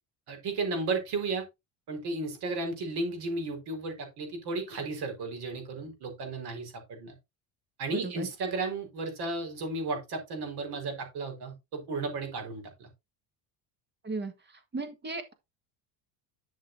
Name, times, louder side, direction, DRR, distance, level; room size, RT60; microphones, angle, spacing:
voice 1, 0.3-1.4 1.9-7.1 7.8-12.9, right 3 dB, 50° right, 4.6 m, -34 dB
voice 2, 7.9-8.3 14.0-15.3, right 3 dB, 20° right, 1.7 m, -36 dB
12.0 x 6.5 x 2.7 m
cardioid pair, 140°, 48 cm